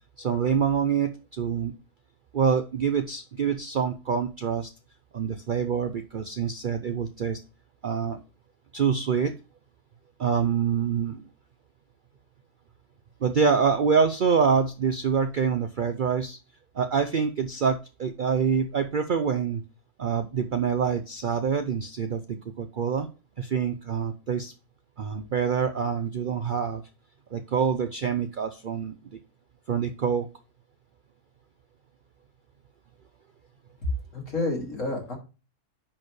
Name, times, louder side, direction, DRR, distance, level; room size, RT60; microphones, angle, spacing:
voice 1, 0.2-1.7 2.3-4.7 5.1-7.4 7.8-8.2 8.7-9.3 10.2-11.2 13.2-16.4 16.8-19.6 20.0-23.1 23.4-24.5 25.0-26.8 27.3-28.9 29.7-30.3, right 6 dB, 85° right, 8 dB, 0.4 m, -26 dB
voice 2, 33.8-35.2, left 2 dB, 55° left, -1 dB, 2.9 m, -29 dB
10.0 x 4.4 x 3.1 m, 0.31 s
omnidirectional pair, 1.6 m